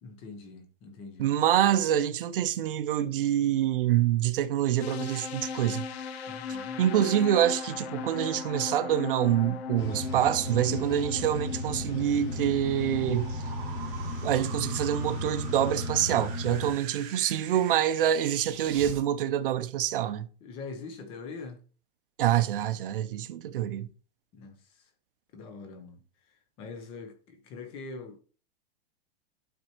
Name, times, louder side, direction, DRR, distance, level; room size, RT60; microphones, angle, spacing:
voice 1, 0.0-1.3 6.3-6.8 20.4-21.6 24.3-24.9 25.3-26.0 26.3-28.2, left 4 dB, 15° left, 0.7 m, -43 dB
voice 2, 1.2-5.9 6.8-13.3 14.2-20.3 22.2-23.9, right 11 dB, 55° right, 0.7 m, -26 dB
sound 1, 4.8-14.6, left 6 dB, 75° left, 0.8 m, -38 dB
sound 2, 9.8-16.7, left 1 dB, 55° left, 3.8 m, -35 dB
sound 3, 11.6-19.0, right 8 dB, 20° right, 0.6 m, -45 dB
11.5 x 4.6 x 3.0 m
supercardioid pair, 180°, 32 cm